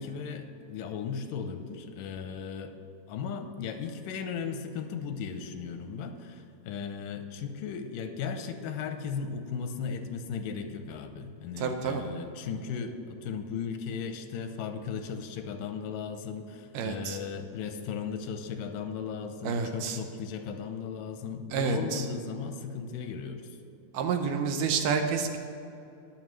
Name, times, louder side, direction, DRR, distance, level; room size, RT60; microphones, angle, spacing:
voice 1, 0.0-2.8 3.1-23.6, left 6 dB, 85° left, 7 dB, 2.3 m, -36 dB
voice 2, 11.6-12.0 16.7-17.2 19.4-20.0 21.5-22.1 23.9-25.4, right 5 dB, 80° right, 6 dB, 2.3 m, -29 dB
20.0 x 7.4 x 3.1 m, 2.7 s
omnidirectional pair, 3.8 m